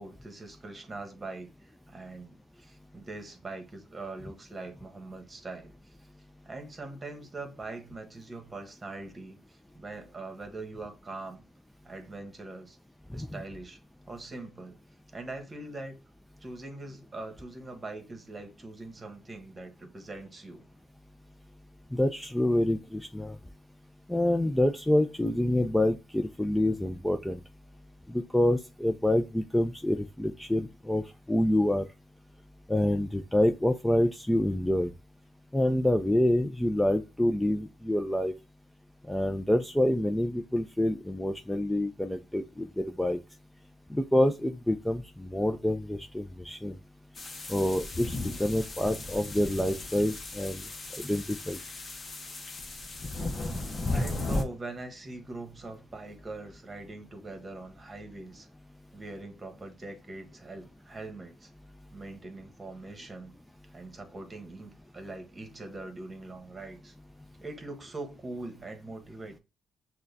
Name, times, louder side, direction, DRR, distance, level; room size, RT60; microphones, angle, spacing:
voice 1, 0.0-6.1 6.4-11.4 11.8-12.8 13.1-13.8 14.1-14.8 15.1-16.0 16.4-20.6 53.1-58.5 58.9-61.5 61.9-63.3 63.7-66.9 67.4-69.4, right 2 dB, 25° right, 1.1 m, -42 dB
voice 2, 21.9-23.4 24.1-27.4 28.1-31.0 31.3-31.8 32.7-34.9 35.5-38.3 39.1-43.2 43.9-46.8 47.5-50.6 51.0-51.6, left 1 dB, 5° left, 0.4 m, -27 dB
sound 1, 47.1-54.4, left 2 dB, 35° left, 0.8 m, -35 dB
6.2 x 2.2 x 2.7 m
cardioid pair, 90°, 0 cm